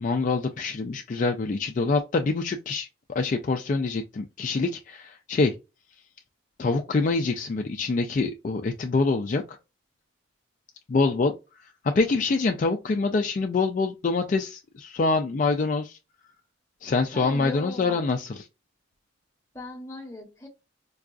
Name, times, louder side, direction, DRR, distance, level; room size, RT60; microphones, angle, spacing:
voice 1, 0.0-5.6 6.6-9.6 10.9-11.3 11.8-16.0 16.8-18.4, left 3 dB, 40° left, 0.3 m, -25 dB
voice 2, 17.1-18.1 19.5-20.5, left 2 dB, 15° left, 0.8 m, -39 dB
4.6 x 2.3 x 2.4 m
head